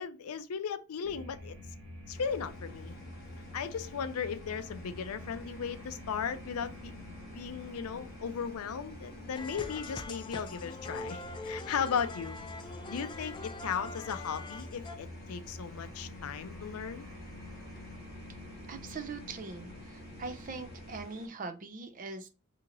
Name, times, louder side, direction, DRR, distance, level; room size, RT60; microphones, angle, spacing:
voice 1, 0.0-1.6 2.1-2.9 3.5-7.0 7.3-12.4 12.9-17.1, left 6 dB, 85° left, 0.4 m, -36 dB
sound 1, 1.0-21.0, left 1 dB, 55° right, 1.4 m, -47 dB
sound 2, 2.1-21.3, left 2 dB, 45° left, 1.0 m, -54 dB
sound 3, 9.4-15.0, left 3 dB, 20° left, 0.3 m, -43 dB
voice 2, 18.7-22.3, right 4 dB, 40° right, 0.5 m, -42 dB
2.8 x 2.8 x 3.8 m
head